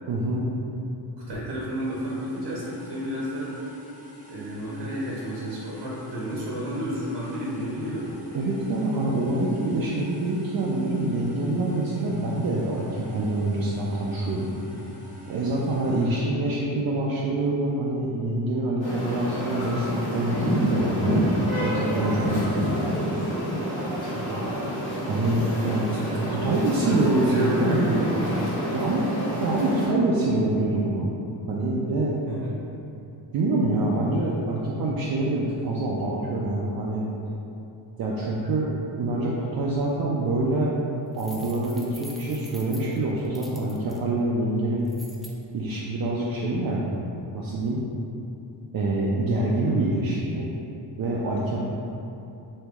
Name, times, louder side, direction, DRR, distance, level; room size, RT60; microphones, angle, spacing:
voice 1, 0.1-0.5 8.3-14.5 15.3-22.8 25.0-25.9 26.2-28.0 28.7-31.1 31.5-32.1 33.3-37.0 38.0-38.7 39.0-40.7 41.2-44.9 45.5-47.0 47.3-47.8 48.7-50.5 51.0-51.6, right 2 dB, 55° right, -5 dB, 0.5 m, -26 dB
voice 2, 1.3-3.5 4.3-8.1 15.9-16.1 24.1-24.5 25.6-26.1 26.5-26.6 26.8-28.6 32.3-32.5 49.6-49.7, equal, 70° right, -6 dB, 0.9 m, -31 dB
sound 1, 1.4-16.1, right 1 dB, 15° right, 1.0 m, -44 dB
sound 2, 18.8-29.9, equal, 90° left, 1.2 m, -28 dB
sound 3, 41.1-44.0 44.9-45.3, equal, ahead, 0.3 m, -46 dB
3.0 x 2.7 x 3.4 m, 2.8 s
cardioid pair, 80°, 45 cm